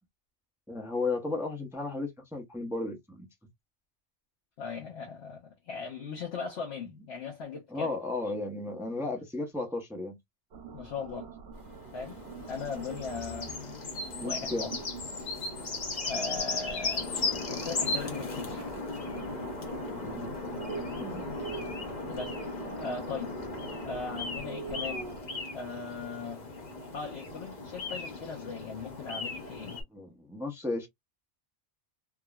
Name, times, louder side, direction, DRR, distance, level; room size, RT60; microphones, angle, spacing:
voice 1, 0.7-3.3 7.7-10.2 14.2-14.7 19.9-20.3 21.0-21.3 29.9-30.9, left 3 dB, 5° right, 0.5 m, -34 dB
voice 2, 4.6-7.9 10.7-11.3 11.9-12.2 12.5-14.8 16.0-17.2 17.5-18.7 22.1-22.4 22.8-23.4 23.8-25.1 25.5-26.5 26.9-29.8, left 5 dB, 65° left, 1.0 m, -39 dB
sound 1, 10.5-25.2, right 5 dB, 70° right, 1.0 m, -45 dB
sound 2, 11.6-29.8, left 3 dB, 45° left, 0.8 m, -37 dB
3.6 x 2.0 x 2.2 m
omnidirectional pair, 1.2 m